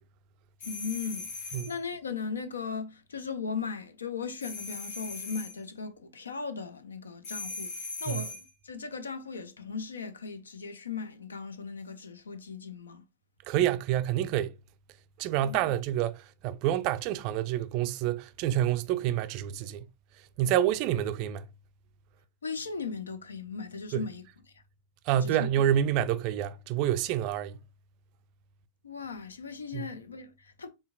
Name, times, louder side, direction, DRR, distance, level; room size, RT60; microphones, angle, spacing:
voice 1, 0.6-13.0 15.4-15.7 22.4-24.2 24.5-24.6 25.2-25.5 28.8-30.7, left 5 dB, 70° left, 0.5 m, -38 dB
sound 1, 0.6-1.8 4.4-5.6 7.2-8.5, left 3 dB, 45° left, 1.3 m, -39 dB
voice 2, 13.5-14.5 15.2-19.9 20.4-21.5 23.9-24.0 25.1-27.6 29.7-29.8, right 11 dB, 45° right, 0.3 m, -28 dB
4.4 x 3.4 x 2.3 m
figure-of-eight pair, 90°, 0 cm